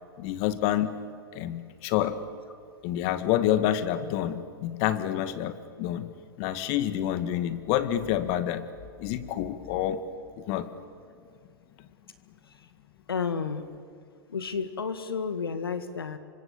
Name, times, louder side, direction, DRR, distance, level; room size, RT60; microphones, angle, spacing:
voice 1, 0.2-0.9 1.3-2.2 2.8-6.1 6.4-8.6 9.0-10.0 10.4-10.7, left 12 dB, 50° left, 11 dB, 2.0 m, -28 dB
voice 2, 13.1-13.7 14.3-16.2, left 5 dB, 85° left, 10 dB, 1.8 m, -31 dB
28.0 x 25.0 x 7.3 m, 2.2 s
hypercardioid pair, 100°, 12 cm